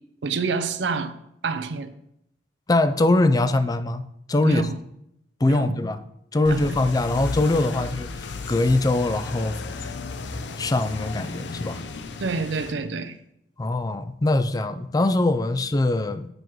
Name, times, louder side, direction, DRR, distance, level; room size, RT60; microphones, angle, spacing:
voice 1, 0.2-1.1 1.4-1.9 4.4-4.8 5.4-5.7 6.5-6.7 7.7-7.8 12.2-13.2, right 4 dB, 80° right, 0.6 m, -27 dB
voice 2, 2.7-4.0 4.3-4.6 5.4-6.0 6.3-8.1 8.5-9.9 10.6-11.8 13.6-16.3, left 2 dB, 20° left, 0.4 m, -22 dB
sound 1, 6.4-12.7, left 3 dB, 75° left, 0.6 m, -34 dB
7.9 x 4.6 x 4.6 m
head